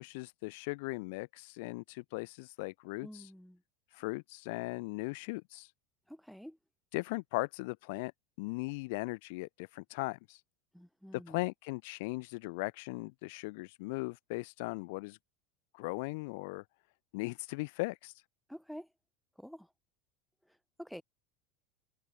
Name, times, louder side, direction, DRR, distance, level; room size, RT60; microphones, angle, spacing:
voice 1, 0.0-3.3 3.9-5.7 6.9-8.1 8.4-10.4 11.1-15.2 15.7-16.6 17.1-18.2, left 26 dB, 65° left, 0.8 m, -38 dB
voice 2, 3.0-3.6 6.1-6.6 10.7-11.4 18.5-18.9 19.4-19.7 20.5-21.0, equal, ahead, 1.8 m, -48 dB
supercardioid pair, 145°, 0 cm